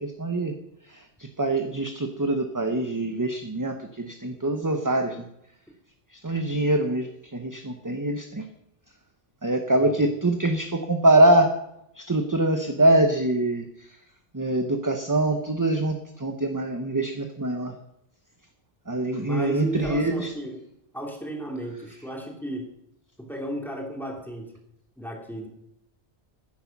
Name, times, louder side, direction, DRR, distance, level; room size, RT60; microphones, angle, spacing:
voice 1, 0.0-0.5 0.9-5.3 6.1-8.5 9.4-11.5 11.9-14.0 14.3-17.7 18.9-20.3, right 1 dB, 20° right, 5 dB, 0.9 m, -24 dB
voice 2, 19.2-20.6 20.9-22.6 23.2-24.5 25.0-25.5, right 1 dB, ahead, -1 dB, 3.0 m, -34 dB
14.5 x 10.0 x 5.9 m, 0.81 s
omnidirectional pair, 1.2 m